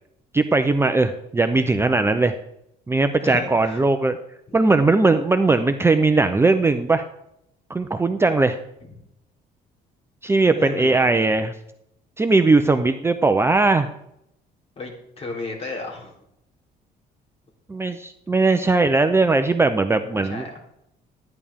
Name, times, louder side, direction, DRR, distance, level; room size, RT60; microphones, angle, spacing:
voice 1, 0.3-2.3 2.9-4.2 4.5-7.0 7.7-8.6 10.2-11.5 12.2-13.9 17.7-20.5, right 3 dB, 15° right, 8 dB, 0.6 m, -19 dB
voice 2, 3.2-3.8 8.8-8.9 10.5-11.2 14.8-16.1 20.1-20.6, left 3 dB, 35° left, -1 dB, 3.6 m, -33 dB
13.0 x 10.0 x 3.6 m, 0.79 s
cardioid pair, 110°, 17 cm